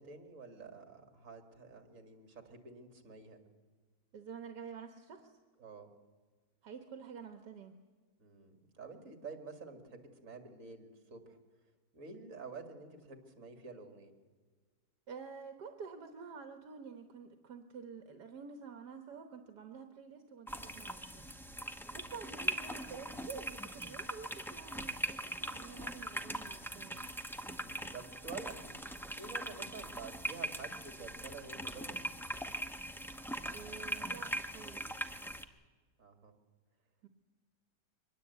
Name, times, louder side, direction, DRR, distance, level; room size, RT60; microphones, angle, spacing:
voice 1, 0.0-3.4 5.6-5.9 8.2-11.4 11.9-14.1 27.5-28.8 29.1-32.0 36.0-36.3, right 4 dB, 50° right, 6 dB, 2.5 m, -49 dB
voice 2, 4.1-5.3 6.6-7.8 15.1-21.3 21.5-21.6 21.9-27.0 33.5-35.0 37.0-37.1, right 6 dB, 70° right, 6 dB, 1.7 m, -49 dB
sound 1, 20.5-35.4, right 1 dB, ahead, 0.6 m, -41 dB
23.0 x 20.5 x 8.2 m, 1.4 s
omnidirectional pair, 1.8 m